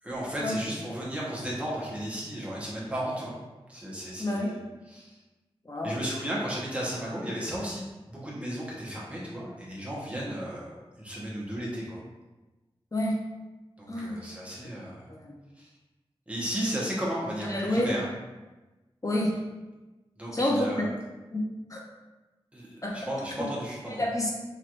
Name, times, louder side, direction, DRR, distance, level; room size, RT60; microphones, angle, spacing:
voice 1, 0.0-3.3 3.7-4.6 4.9-5.2 5.8-12.0 13.8-15.1 15.6-15.7 16.3-18.0 20.2-20.9 22.5-24.0, equal, 10° right, -6 dB, 1.0 m, -34 dB
voice 2, 4.2-4.5 5.6-6.0 12.9-13.2 13.9-14.2 15.1-15.3 17.5-17.9 19.0-19.4 20.3-20.7 21.3-21.8 22.8-23.0 23.9-24.3, left 1 dB, 30° left, -2 dB, 0.6 m, -28 dB
3.1 x 2.9 x 2.5 m, 1.1 s
wide cardioid pair, 55°, 10 cm